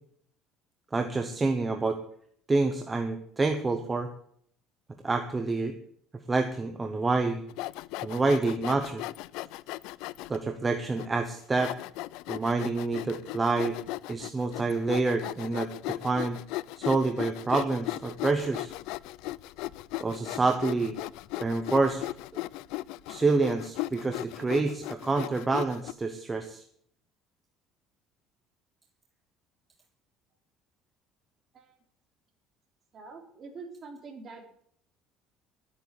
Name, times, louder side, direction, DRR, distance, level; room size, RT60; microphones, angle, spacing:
voice 1, 0.9-2.0 2.5-4.1 5.0-5.7 6.3-7.4 8.0-9.0 10.3-11.8 12.3-13.8 14.1-16.4 16.8-18.7 20.0-21.0 21.4-22.1 23.1-26.6, right 3 dB, 15° right, 7 dB, 1.0 m, -27 dB
Sawing, 7.5-10.4 11.0-11.1 11.6-25.9, left 18 dB, 80° left, 0.4 m, -37 dB
voice 2, 32.9-34.5, right 4 dB, 35° right, 2 dB, 3.4 m, -45 dB
12.5 x 8.6 x 8.3 m, 0.66 s
cardioid pair, 145°, 0 cm